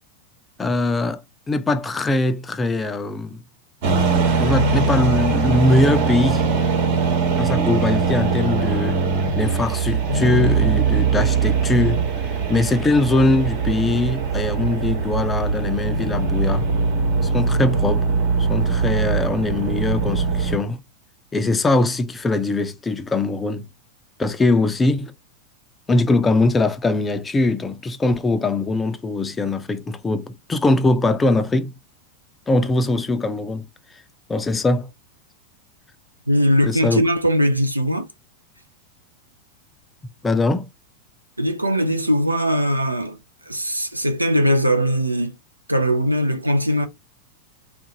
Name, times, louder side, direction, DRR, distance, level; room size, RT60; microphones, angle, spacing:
voice 1, 0.6-1.2 1.5-3.4 4.4-6.4 7.4-9.0 9.3-12.0 12.5-16.7 17.2-18.0 18.5-20.8 21.3-23.7 24.2-25.1 25.9-31.7 32.5-33.7 34.3-34.9 36.6-37.0 40.2-40.7, left 2 dB, 15° left, 0.4 m, -21 dB
sound 1, 3.8-20.6, right 4 dB, 50° right, 1.2 m, -21 dB
voice 2, 36.3-38.1 41.4-43.2 43.5-45.4 45.7-46.9, equal, 85° right, 0.6 m, -20 dB
3.6 x 2.5 x 2.7 m
figure-of-eight pair, 90°, 0 cm